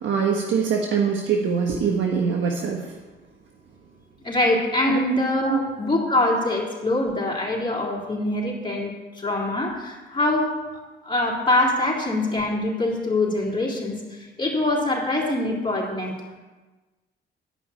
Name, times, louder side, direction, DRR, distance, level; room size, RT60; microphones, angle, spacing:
voice 1, 0.0-2.9 4.9-5.0 5.4-5.7, right 6 dB, 70° right, 1 dB, 1.4 m, -23 dB
voice 2, 4.2-10.5 11.0-14.0 14.4-16.2, left 1 dB, 25° left, -3 dB, 3.8 m, -24 dB
12.0 x 5.7 x 8.7 m, 1.2 s
cardioid pair, 90°, 20 cm